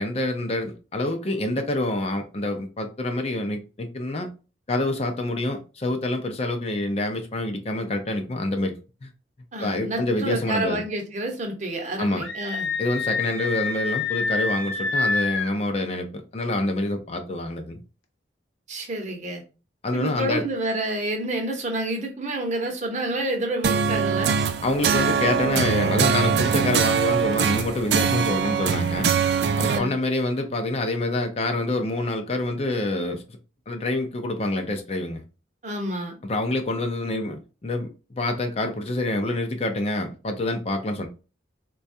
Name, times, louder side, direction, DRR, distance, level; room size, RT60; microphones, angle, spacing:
voice 1, 0.0-4.3 4.7-9.1 9.6-10.8 12.0-12.2 12.8-17.8 19.8-20.4 24.6-29.1 29.6-33.2 33.7-35.2 36.2-41.1, left 2 dB, 35° left, 0.4 m, -26 dB
voice 2, 9.5-12.7 18.7-19.4 19.9-24.3 29.6-30.0 35.6-36.2, right 1 dB, 40° right, 0.8 m, -29 dB
Screaming, 12.2-15.6, left 4 dB, 85° left, 0.7 m, -27 dB
sound 1, 23.6-29.8, right 6 dB, 60° right, 0.3 m, -22 dB
4.2 x 2.3 x 2.6 m
head